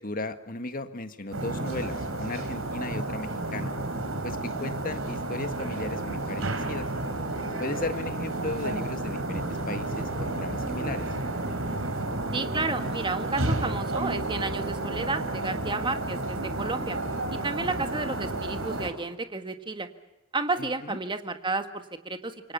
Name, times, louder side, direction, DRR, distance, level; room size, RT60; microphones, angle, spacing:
voice 1, 0.0-3.7 4.2-6.9 7.6-11.1 20.6-21.0, left 2 dB, 45° left, 9 dB, 1.7 m, -36 dB
sound 1, 1.3-18.9, right 2 dB, 70° right, 4.1 m, -31 dB
voice 2, 12.3-17.0 17.3-19.9 20.3-22.5, right 3 dB, 25° right, 8 dB, 1.7 m, -32 dB
27.0 x 24.0 x 7.0 m, 1.0 s
head